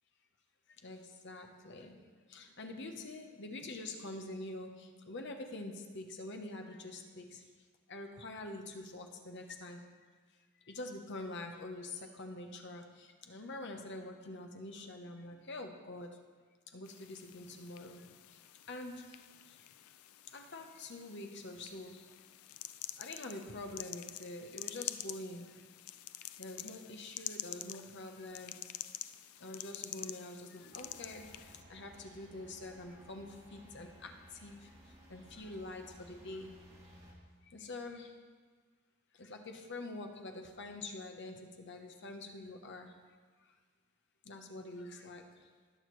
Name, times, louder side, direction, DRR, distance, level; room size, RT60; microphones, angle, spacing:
voice 1, 0.8-2.0 2.3-7.4 7.9-9.8 10.7-16.1 16.7-18.0 18.7-19.1 20.3-22.0 23.0-25.5 26.4-28.6 29.4-31.3 31.7-34.1 34.4-34.6 35.1-36.6 37.5-38.1 39.2-42.9 44.3-45.2, left 2 dB, 55° left, 4 dB, 0.9 m, -45 dB
sound 1, 16.8-31.6, left 13 dB, 80° left, 0.4 m, -47 dB
sound 2, 30.7-37.1, equal, 30° right, 1.6 m, -58 dB
18.5 x 6.4 x 3.2 m, 1.5 s
head